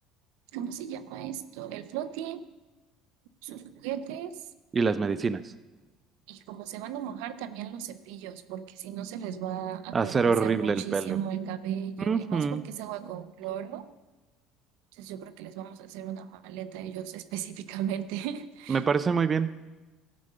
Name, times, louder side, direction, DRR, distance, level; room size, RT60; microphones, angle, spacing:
voice 1, 0.5-2.4 3.4-4.5 6.3-13.9 14.9-18.8, right 10 dB, 75° right, 11 dB, 0.6 m, -36 dB
voice 2, 4.7-5.4 9.9-11.2 12.1-12.6 18.7-19.7, right 5 dB, 30° right, 11 dB, 0.5 m, -26 dB
14.0 x 5.2 x 6.7 m, 1.2 s
supercardioid pair, 80°, 0 cm